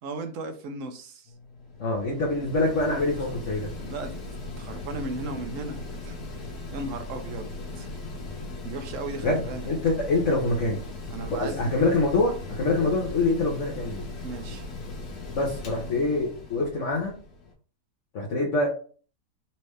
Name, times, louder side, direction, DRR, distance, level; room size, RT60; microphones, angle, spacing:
voice 1, 0.0-1.3 2.9-3.2 3.8-6.4 6.7-7.9 8.6-9.7 11.1-11.7 14.2-14.7, right 3 dB, 65° right, 7 dB, 1.0 m, -36 dB
Mechanical fan, 1.3-17.5, left 2 dB, 75° left, 1.6 m, -38 dB
voice 2, 1.8-3.7 9.2-10.8 11.3-14.0 15.3-17.1 18.1-18.7, left 2 dB, 55° left, -3 dB, 1.2 m, -25 dB
4.3 x 3.3 x 3.2 m, 0.40 s
omnidirectional pair, 1.7 m